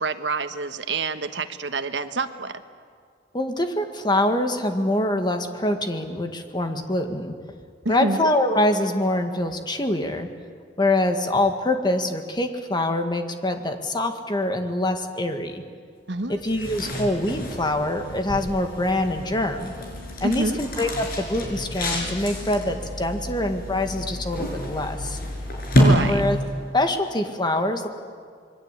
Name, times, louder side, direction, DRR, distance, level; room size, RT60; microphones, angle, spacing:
voice 1, 0.0-2.6 7.8-8.3 16.1-16.4 20.2-20.6 25.8-26.2, right 3 dB, 80° right, 9 dB, 1.3 m, -27 dB
voice 2, 3.3-7.3 7.9-10.3 10.8-15.6 16.3-19.7 20.2-25.2 26.1-26.4 26.7-27.9, left 1 dB, 25° left, 6 dB, 1.8 m, -24 dB
sound 1, 16.3-26.7, equal, 55° left, 6.0 m, -27 dB
26.5 x 22.0 x 8.3 m, 2.1 s
head